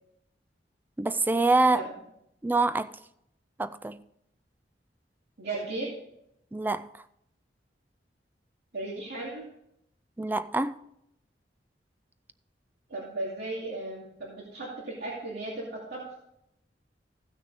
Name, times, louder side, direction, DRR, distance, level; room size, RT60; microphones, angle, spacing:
voice 1, 1.0-1.9 2.4-2.9 3.6-4.0 6.5-6.9 10.2-10.8, right 2 dB, 10° right, 0.3 m, -25 dB
voice 2, 5.4-5.9 8.7-9.4 12.9-16.2, right 2 dB, 65° right, 2.4 m, -36 dB
15.0 x 6.2 x 4.1 m
head